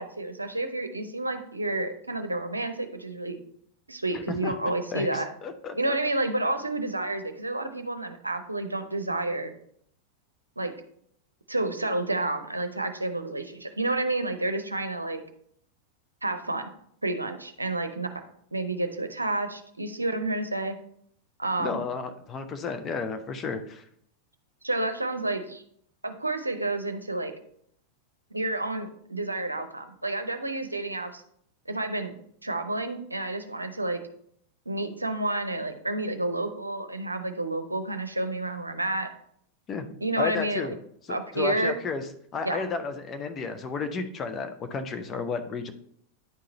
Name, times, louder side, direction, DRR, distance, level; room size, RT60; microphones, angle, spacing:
voice 1, 0.0-3.4 3.9-5.3 5.7-9.6 10.6-10.7 11.5-15.2 16.2-16.7 17.0-18.1 18.5-20.8 21.4-21.8 24.6-25.6 26.0-27.3 28.3-31.2 31.7-32.1 32.4-34.0 34.7-39.1 40.0-40.7 41.1-41.7 42.4-42.7, right 2 dB, 85° right, 7 dB, 0.6 m, -30 dB
voice 2, 4.1-4.5 4.9-5.9 21.6-23.8 39.7-39.9 40.2-40.7 41.1-42.1 42.3-45.7, left 5 dB, 25° left, 8 dB, 0.8 m, -32 dB
9.6 x 3.8 x 4.1 m, 0.68 s
figure-of-eight pair, 90°, 0 cm